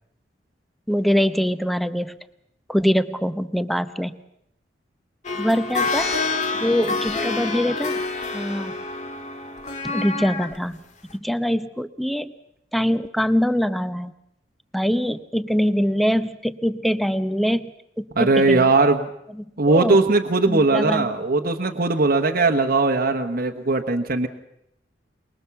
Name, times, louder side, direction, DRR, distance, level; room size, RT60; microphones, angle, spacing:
voice 1, 0.9-2.1 2.7-4.1 5.4-6.1 6.6-8.0 8.3-8.7 9.9-10.8 11.2-12.3 12.7-14.1 14.7-17.7 18.0-18.7 19.4-20.0 20.5-21.1, equal, ahead, 12 dB, 0.8 m, -23 dB
sound 1, 5.2-10.6 11.1-11.2, left 3 dB, 40° left, 2.0 m, -27 dB
voice 2, 18.2-19.1 19.6-24.3, right 3 dB, 55° right, 4 dB, 1.2 m, -19 dB
24.0 x 21.5 x 7.0 m, 0.78 s
head